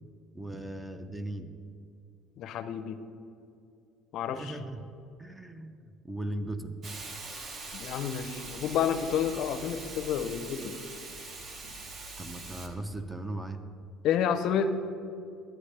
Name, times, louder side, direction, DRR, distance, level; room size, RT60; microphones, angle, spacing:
voice 1, 0.3-1.5 4.4-4.8 5.2-6.9 12.2-13.7, right 1 dB, 10° right, 9 dB, 0.5 m, -38 dB
voice 2, 2.4-3.0 4.1-4.6 7.7-10.8 14.0-14.8, left 8 dB, 60° left, 10 dB, 0.5 m, -30 dB
Hiss, 6.8-12.7, right 3 dB, 35° right, 0.9 m, -42 dB
11.5 x 8.9 x 3.3 m, 2.5 s
cardioid pair, 130°, 0 cm